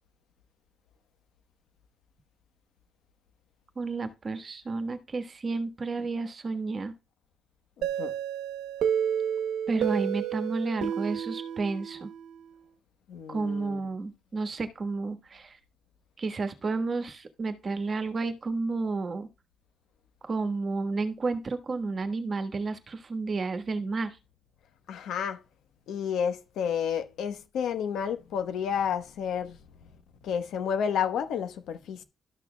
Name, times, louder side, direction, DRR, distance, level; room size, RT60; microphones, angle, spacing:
voice 1, 3.8-6.9 9.7-12.1 13.3-15.6 16.2-19.3 20.2-24.2, right 3 dB, 35° right, 1.3 m, -31 dB
voice 2, 7.8-8.2 13.1-13.8 24.9-25.4 25.9-29.6 30.2-32.0, left 8 dB, 85° left, 1.1 m, -31 dB
sound 1, 7.8-12.5, right 9 dB, 90° right, 1.0 m, -31 dB
13.0 x 6.2 x 2.2 m
cardioid pair, 115°, 0 cm